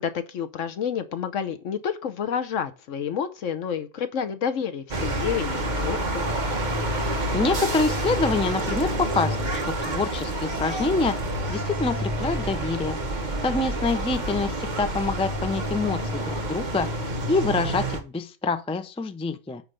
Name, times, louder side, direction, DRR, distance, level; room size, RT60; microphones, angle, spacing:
voice 1, 0.0-6.3, left 7 dB, 80° left, 1.2 m, -29 dB
sound 1, 4.9-18.0, right 1 dB, 40° right, 1.2 m, -28 dB
voice 2, 7.3-11.2 11.5-13.0 13.4-16.9 17.3-19.6, left 3 dB, 10° left, 0.3 m, -26 dB
9.4 x 3.3 x 6.5 m
omnidirectional pair, 1.3 m